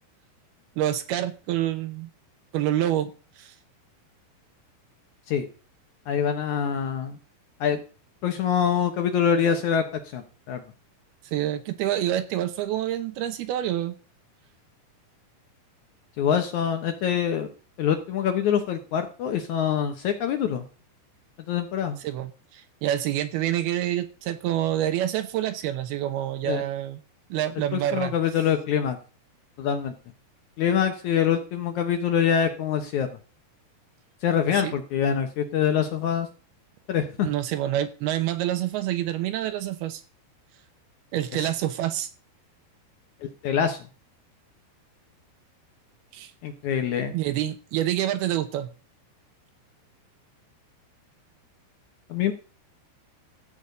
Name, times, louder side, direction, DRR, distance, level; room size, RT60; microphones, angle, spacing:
voice 1, 0.8-2.1 2.5-3.5 11.3-14.0 22.0-27.0 27.3-28.1 34.5-34.7 37.2-40.0 41.1-42.1 46.1-46.3 47.1-48.7, right 12 dB, 75° right, 2.7 m, -27 dB
voice 2, 6.1-7.2 7.6-7.8 8.2-9.8 10.1-10.2 10.5-10.6 16.2-17.5 17.8-20.6 21.5-22.0 26.5-26.6 27.7-29.0 29.6-29.9 30.6-33.1 34.2-36.3 36.9-37.3 41.4-41.5 43.2-43.8 46.4-47.1 52.1-52.3, left 8 dB, 70° left, 1.8 m, -25 dB
14.0 x 5.2 x 8.4 m
omnidirectional pair, 4.8 m